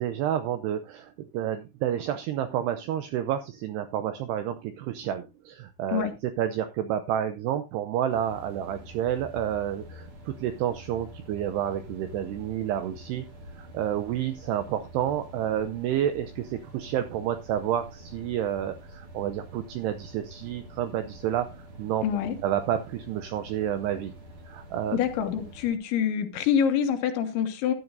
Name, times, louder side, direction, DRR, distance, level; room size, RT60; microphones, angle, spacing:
voice 1, 0.0-13.2 13.6-21.5 21.8-22.0 22.4-24.1 24.5-25.0, right 10 dB, 85° right, 9 dB, 2.4 m, -29 dB
sound 1, 8.1-25.8, right 1 dB, 50° right, 1.7 m, -46 dB
voice 2, 22.0-22.4 24.9-27.7, left 8 dB, 75° left, 6 dB, 3.6 m, -26 dB
13.5 x 11.0 x 2.6 m, 0.25 s
omnidirectional pair, 5.5 m